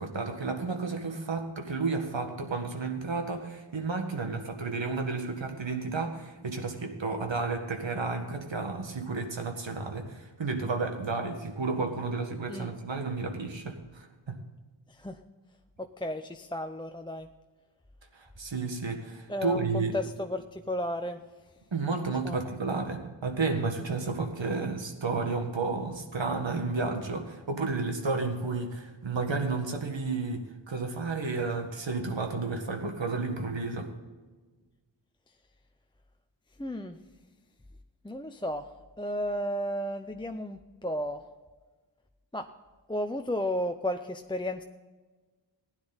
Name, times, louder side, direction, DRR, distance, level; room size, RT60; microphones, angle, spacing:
voice 1, 0.0-14.4 18.1-20.0 21.7-33.9, right 3 dB, 75° right, 4 dB, 1.8 m, -32 dB
voice 2, 14.9-15.2 15.8-17.3 19.3-21.2 22.1-22.4 36.6-37.0 38.0-41.2 42.3-42.5 42.9-44.6, left 1 dB, 10° left, 6 dB, 0.6 m, -33 dB
15.5 x 10.0 x 4.0 m, 1.3 s
wide cardioid pair, 75°, 45 cm